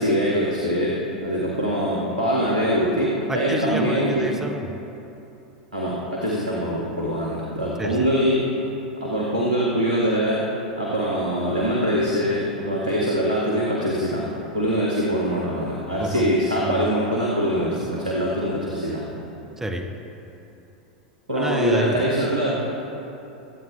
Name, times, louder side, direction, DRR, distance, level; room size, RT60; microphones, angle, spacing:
voice 1, 0.0-4.3 5.7-8.5 9.0-10.5 10.8-14.3 14.5-19.0 21.3-22.8, equal, 80° right, -5 dB, 1.8 m, -23 dB
voice 2, 3.3-4.7 7.8-8.0 16.0-16.2 16.6-16.8 19.6-19.9 21.3-22.0, right 1 dB, 10° right, 3 dB, 1.0 m, -28 dB
22.0 x 9.1 x 3.2 m, 2.9 s
figure-of-eight pair, 90°, 4 cm